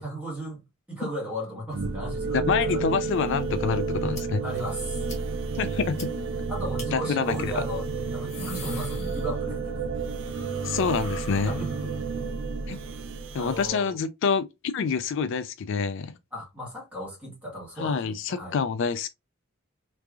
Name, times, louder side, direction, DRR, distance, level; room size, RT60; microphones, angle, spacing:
voice 1, 0.0-2.4 2.7-2.8 4.4-5.0 6.5-9.7 11.5-11.9 13.3-14.0 16.3-18.6, equal, 5° right, 1.9 m, -36 dB
sound 1, 1.7-13.7, right 4 dB, 65° right, 0.5 m, -31 dB
voice 2, 2.3-4.4 5.6-6.1 6.9-7.5 10.6-11.6 12.7-12.8 13.3-16.1 17.8-19.1, left 5 dB, 60° left, 0.4 m, -27 dB
sound 2, 4.1-4.2 4.6-4.7 5.1-5.2 5.5-5.6 6.0-6.1 6.8-6.9 8.0-9.7 10.0-12.1, left 3 dB, 35° left, 1.6 m, -43 dB
3.4 x 3.2 x 2.4 m
head